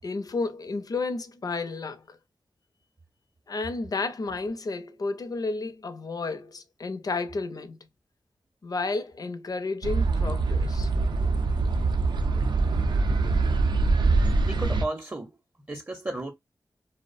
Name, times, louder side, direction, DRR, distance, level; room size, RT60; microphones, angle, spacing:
voice 1, 0.0-2.2 3.5-7.8 8.6-10.9, left 3 dB, 50° left, 0.5 m, -32 dB
sound 1, 9.8-14.9, right 3 dB, 70° right, 0.4 m, -24 dB
voice 2, 14.4-15.3 15.7-16.3, right 2 dB, 25° right, 0.6 m, -33 dB
2.4 x 2.0 x 2.4 m
cardioid pair, 55°, 8 cm